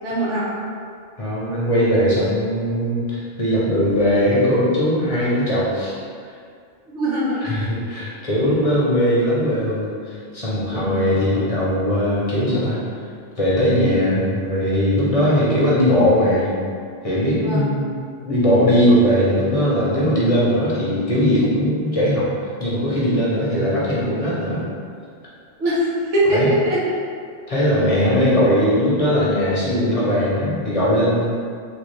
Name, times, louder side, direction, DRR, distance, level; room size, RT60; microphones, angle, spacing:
voice 1, 0.0-0.5 6.9-7.4 10.7-11.0 17.4-17.7 25.6-26.8 27.5-27.6, right 1 dB, 80° right, -7 dB, 1.2 m, -22 dB
voice 2, 1.2-5.9 7.4-12.8 13.4-16.5 17.0-17.9 18.2-22.3 22.6-24.7 26.3-26.5 27.5-31.3, equal, 35° left, -8 dB, 0.7 m, -19 dB
3.9 x 2.4 x 3.2 m, 2.2 s
omnidirectional pair, 1.2 m